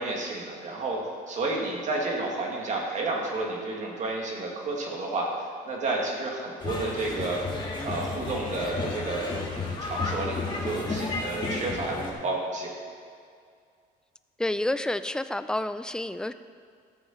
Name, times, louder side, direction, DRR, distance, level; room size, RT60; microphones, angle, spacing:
voice 1, 0.0-7.4 7.8-12.7, right 2 dB, 45° right, -1 dB, 2.4 m, -31 dB
sound 1, 6.6-12.1, left 3 dB, 25° left, 2.1 m, -32 dB
voice 2, 14.4-16.3, left 1 dB, 5° left, 11 dB, 0.4 m, -29 dB
14.5 x 6.9 x 4.5 m, 2.2 s
cardioid pair, 110°, 17 cm